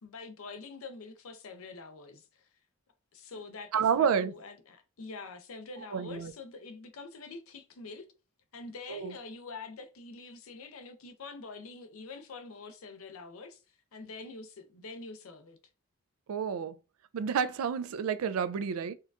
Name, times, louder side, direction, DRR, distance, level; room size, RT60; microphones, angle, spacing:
voice 1, 0.0-2.5 3.1-8.1 8.5-13.6 13.9-15.6, left 3 dB, 80° left, 0.6 m, -45 dB
voice 2, 3.7-4.3 5.9-6.3 8.9-9.1 16.3-16.7 17.1-18.9, right 7 dB, 85° right, 0.3 m, -29 dB
4.3 x 2.5 x 2.3 m
head